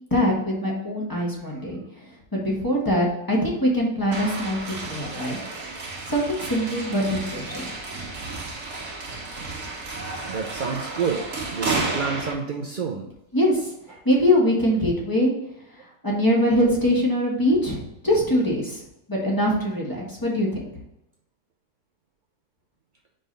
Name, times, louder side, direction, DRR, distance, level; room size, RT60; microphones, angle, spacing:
voice 1, 0.1-1.8 2.3-5.4 6.1-7.7 13.3-13.7 14.0-15.3 16.0-18.8 19.1-20.7, equal, 15° left, -4 dB, 1.5 m, -23 dB
sound 1, 4.1-12.3, right 3 dB, 55° right, 1.8 m, -32 dB
voice 2, 10.3-11.2 11.5-13.1 13.9-14.0, right 5 dB, 80° right, 1 dB, 0.4 m, -29 dB
5.2 x 4.0 x 5.3 m, 0.84 s
omnidirectional pair, 1.7 m